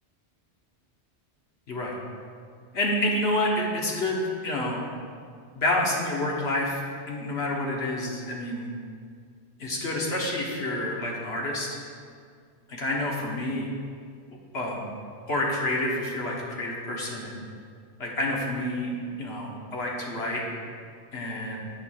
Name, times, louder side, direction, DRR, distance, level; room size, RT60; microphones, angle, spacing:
voice 1, 2.7-4.8 5.5-6.8 7.1-8.7 9.6-11.7 12.7-13.8 14.5-14.9 15.3-17.4 18.0-18.9 19.2-20.4 21.1-21.6, left 1 dB, 65° left, -3 dB, 1.3 m, -28 dB
8.3 x 3.2 x 6.3 m, 2.1 s
omnidirectional pair, 1.2 m